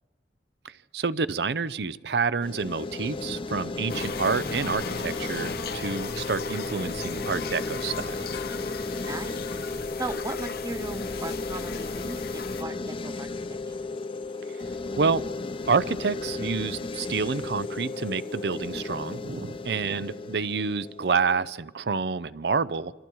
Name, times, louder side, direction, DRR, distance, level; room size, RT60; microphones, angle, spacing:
voice 1, 0.6-8.3 15.0-15.2 15.7-22.9, right 5 dB, 70° right, 16 dB, 0.6 m, -28 dB
sound 1, 2.4-21.5, left 3 dB, 30° left, 0.7 m, -34 dB
sound 2, 3.9-12.6, left 4 dB, 60° left, 1.0 m, -36 dB
voice 2, 8.9-9.4 10.0-13.3 13.7-13.8 19.7-20.1, right 2 dB, 20° right, 10 dB, 1.0 m, -38 dB
27.0 x 24.5 x 4.7 m, 1.2 s
head